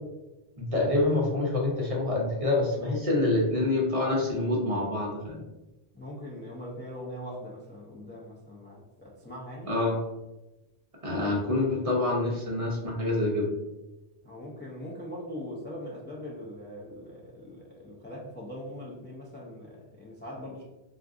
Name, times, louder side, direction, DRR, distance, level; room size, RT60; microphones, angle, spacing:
voice 1, 0.6-5.4 9.7-10.0 11.0-13.5, left 2 dB, 35° right, -3 dB, 0.7 m, -26 dB
voice 2, 5.9-9.7 14.2-20.6, equal, 20° left, -5 dB, 0.3 m, -41 dB
3.6 x 2.5 x 2.4 m, 1.0 s
omnidirectional pair, 1.1 m